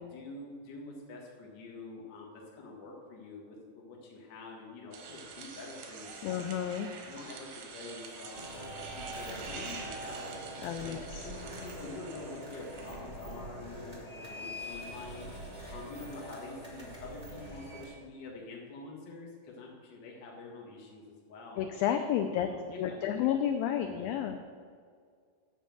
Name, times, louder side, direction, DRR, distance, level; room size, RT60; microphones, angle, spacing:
voice 1, 0.1-6.5 7.1-10.6 10.8-15.3 15.7-21.7 22.4-23.1 23.9-24.1, left 3 dB, 65° left, -2 dB, 1.1 m, -47 dB
sound 1, 4.9-13.2, right 5 dB, 85° right, 3.1 m, -47 dB
voice 2, 6.2-6.9 10.6-11.2 21.6-22.5 22.8-24.4, left 10 dB, 90° left, 6 dB, 2.0 m, -31 dB
sound 2, 8.3-17.8, equal, 30° right, 0.6 m, -44 dB
9.4 x 5.3 x 7.6 m, 2.1 s
omnidirectional pair, 4.6 m